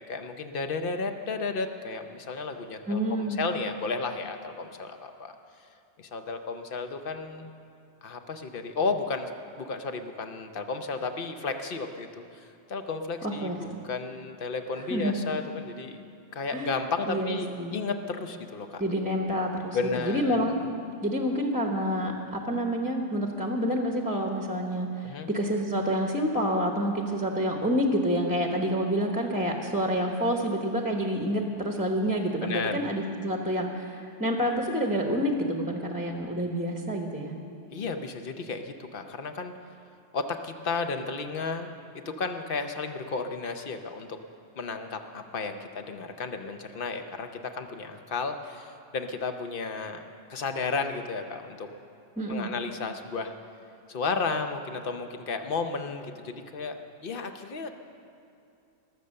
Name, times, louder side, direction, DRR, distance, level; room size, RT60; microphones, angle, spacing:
voice 1, 0.1-5.3 6.0-7.5 8.0-9.3 9.6-16.0 16.3-18.8 19.7-20.5 25.0-25.3 32.4-32.8 37.7-39.5 40.1-41.7 42.0-44.2 44.6-50.0 50.3-51.7 52.3-53.3 53.9-56.8 57.0-57.7, left 4 dB, 55° left, 7 dB, 0.9 m, -33 dB
voice 2, 2.9-3.4 13.2-13.8 14.9-15.2 16.5-16.7 17.1-17.8 18.8-19.8 20.0-20.5 21.0-37.3 52.2-52.5, equal, 10° right, 2 dB, 0.9 m, -28 dB
20.5 x 6.9 x 6.5 m, 2.6 s
omnidirectional pair, 1.2 m